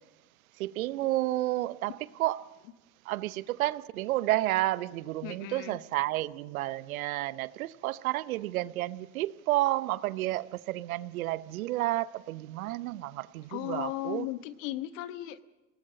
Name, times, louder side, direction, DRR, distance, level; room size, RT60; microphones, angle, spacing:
voice 1, 0.6-2.5 3.1-14.3, right 16 dB, 80° right, 0.8 m, -31 dB
voice 2, 5.2-5.8 13.5-15.4, left 15 dB, 65° left, 1.3 m, -36 dB
27.0 x 18.0 x 6.5 m
hypercardioid pair, 80°, 42 cm